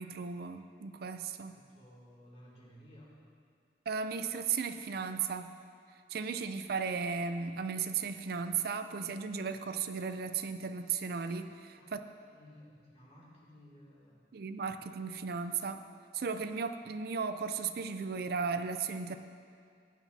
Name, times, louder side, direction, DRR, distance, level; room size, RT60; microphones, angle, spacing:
voice 1, 0.0-1.6 3.9-5.5 6.1-12.0 14.3-15.8 16.1-19.2, right 5 dB, 60° right, 9 dB, 0.4 m, -35 dB
voice 2, 1.4-3.1 11.8-11.9 12.3-14.2, equal, 35° left, -6 dB, 2.5 m, -56 dB
15.0 x 9.2 x 2.7 m, 2.2 s
head